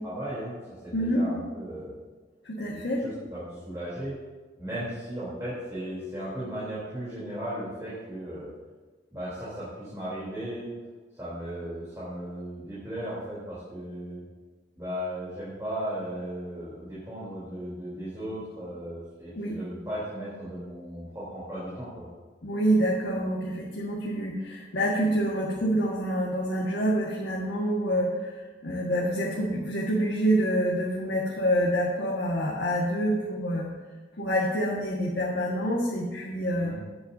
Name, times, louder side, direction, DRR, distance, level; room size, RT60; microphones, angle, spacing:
voice 1, 0.0-1.9 2.6-4.1 4.6-8.5 9.1-10.7 11.1-14.2 14.8-22.1 36.5-36.7, equal, 15° right, -10 dB, 3.3 m, -36 dB
voice 2, 0.9-1.2 2.4-3.0 19.4-19.6 22.4-33.7 34.2-36.7, equal, 65° left, -4 dB, 1.6 m, -27 dB
17.5 x 7.9 x 2.7 m, 1.4 s
head